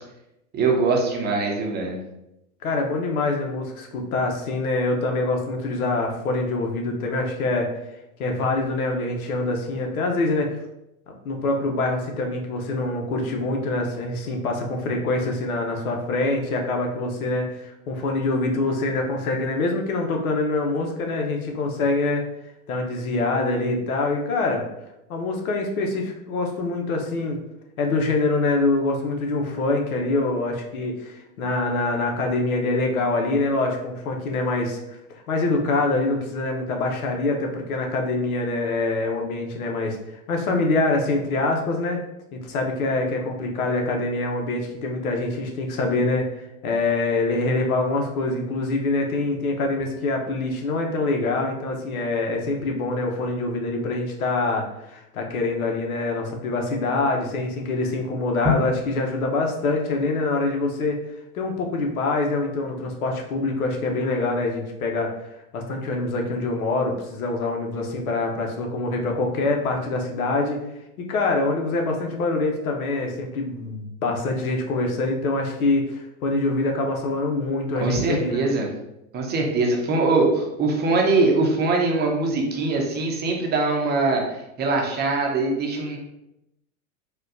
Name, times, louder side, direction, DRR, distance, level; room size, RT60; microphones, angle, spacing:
voice 1, 0.5-2.0 77.7-78.7 79.1-86.0, right 3 dB, 25° right, 0 dB, 0.7 m, -22 dB
voice 2, 2.6-7.7 8.2-10.6 11.1-22.2 22.7-24.6 25.1-27.4 27.8-42.0 42.3-61.0 61.3-70.6 71.0-78.4, left 2 dB, 80° left, 2 dB, 0.8 m, -25 dB
4.3 x 2.2 x 2.5 m, 0.87 s
hypercardioid pair, 110°, 42 cm